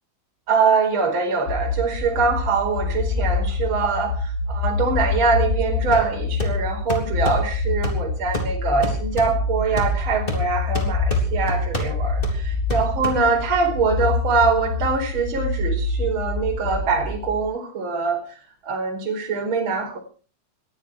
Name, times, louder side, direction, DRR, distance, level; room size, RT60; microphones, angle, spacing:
voice 1, 0.5-20.0, right 4 dB, 25° right, 2 dB, 4.7 m, -23 dB
sound 1, 1.5-17.4, left 3 dB, 40° left, 4.4 m, -26 dB
sound 2, 5.9-13.6, left 1 dB, 15° left, 2.8 m, -31 dB
20.5 x 14.0 x 4.7 m, 0.39 s
omnidirectional pair, 5.5 m